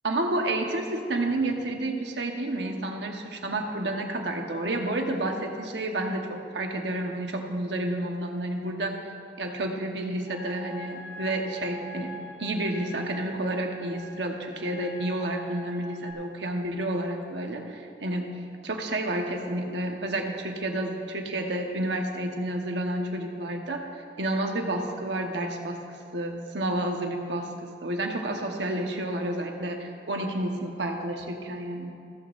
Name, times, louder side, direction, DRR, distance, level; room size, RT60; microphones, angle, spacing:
voice 1, 0.0-8.9 9.4-12.1 12.4-18.3 18.6-23.8 24.2-25.8 26.1-31.9, right 1 dB, 85° right, 2 dB, 1.2 m, -30 dB
sound 1, 10.3-16.1, left 1 dB, 15° left, 1.7 m, -44 dB
15.0 x 13.5 x 2.6 m, 2.4 s
head